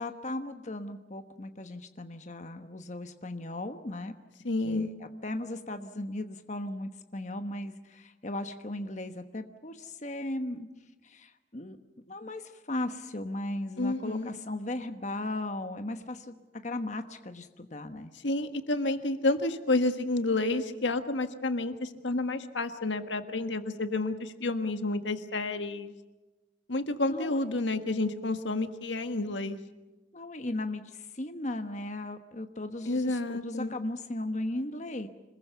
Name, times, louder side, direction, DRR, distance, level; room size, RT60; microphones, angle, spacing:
voice 1, 0.0-4.1 4.6-10.7 11.0-11.8 12.1-18.1 27.1-27.4 30.1-35.1, left 1 dB, 40° left, 7 dB, 1.2 m, -37 dB
voice 2, 4.4-4.9 13.8-14.3 18.2-25.9 26.7-29.6 32.8-33.7, left 2 dB, 80° left, 8 dB, 1.6 m, -30 dB
26.5 x 21.0 x 7.0 m, 1.1 s
head